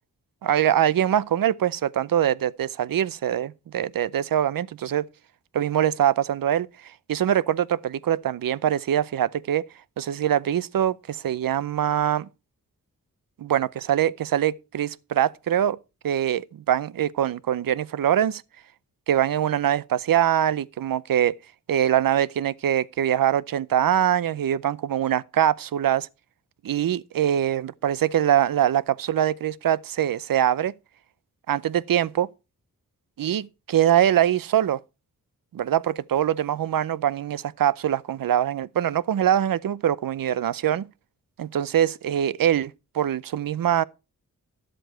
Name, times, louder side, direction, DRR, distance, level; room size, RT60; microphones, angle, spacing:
voice 1, 0.4-5.0 5.5-6.7 7.1-9.6 10.0-12.3 13.4-15.8 16.0-18.4 19.1-21.4 21.7-26.1 26.6-30.7 31.5-32.3 33.2-34.8 35.5-40.9 41.4-43.8, right 10 dB, 75° right, 0.6 m, -23 dB
11.5 x 7.7 x 4.4 m
cardioid pair, 50°, 35 cm